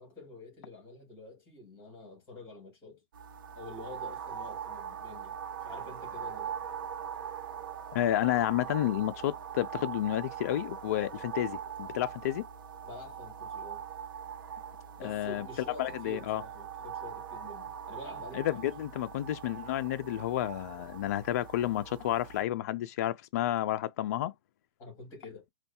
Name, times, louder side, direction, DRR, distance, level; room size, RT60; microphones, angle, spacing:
voice 1, 0.0-3.0 3.6-6.6 12.8-13.8 15.0-18.7 24.8-25.5, left 2 dB, 20° left, 2.2 m, -47 dB
sound 1, 3.1-22.4, right 8 dB, 55° right, 0.8 m, -42 dB
voice 2, 7.9-12.5 15.0-15.4 15.8-16.4 18.3-24.3, left 13 dB, 40° left, 0.4 m, -31 dB
4.3 x 2.2 x 2.8 m
hypercardioid pair, 160°, 13 cm